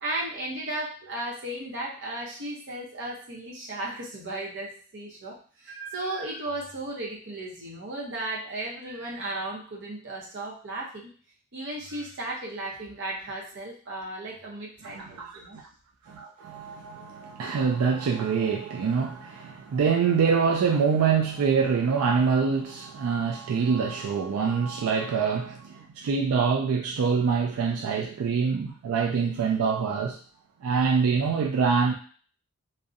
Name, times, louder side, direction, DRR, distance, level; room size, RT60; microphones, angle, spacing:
voice 1, 0.0-11.1 11.5-15.6, right 2 dB, 55° right, -3 dB, 0.7 m, -35 dB
voice 2, 14.8-15.4 16.1-30.2 30.6-31.9, right 5 dB, 90° right, 1 dB, 0.3 m, -25 dB
2.6 x 2.1 x 2.4 m, 0.43 s
head